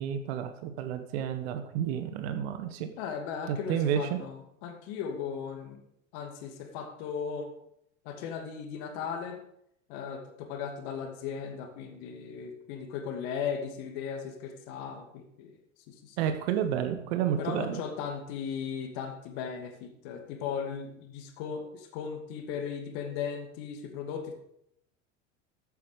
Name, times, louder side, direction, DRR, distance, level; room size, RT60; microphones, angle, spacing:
voice 1, 0.0-2.9 3.5-4.2 16.2-17.8, right 9 dB, 55° right, 8 dB, 1.4 m, -30 dB
voice 2, 3.0-5.8 6.1-7.5 8.0-9.4 9.9-15.5 15.9-16.3 17.4-24.3, left 7 dB, 50° left, 5 dB, 2.5 m, -37 dB
14.0 x 8.6 x 5.1 m, 0.75 s
figure-of-eight pair, 80°, 38 cm